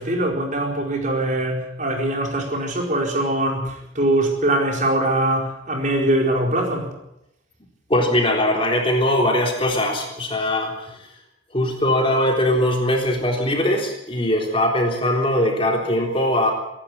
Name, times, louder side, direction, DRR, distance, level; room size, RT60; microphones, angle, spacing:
voice 1, 0.0-6.9, right 1 dB, 40° right, 1 dB, 4.5 m, -22 dB
voice 2, 7.9-11.1 11.5-16.5, left 1 dB, 25° left, 1 dB, 3.8 m, -21 dB
25.0 x 12.0 x 9.6 m, 0.84 s
head